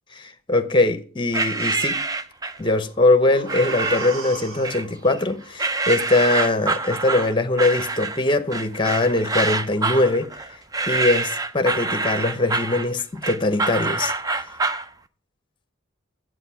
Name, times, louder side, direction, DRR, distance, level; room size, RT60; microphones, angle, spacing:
voice 1, 0.2-2.0 2.6-10.3 10.9-14.1, left 2 dB, 25° left, 0.8 m, -21 dB
sound 1, 1.3-2.7 3.5-4.2 4.6-5.2 5.6-14.9, right 3 dB, 20° right, 0.4 m, -26 dB
sound 2, 2.6-6.6 7.0-7.1, right 4 dB, 85° right, 1.7 m, -39 dB
8.2 x 7.8 x 5.6 m
head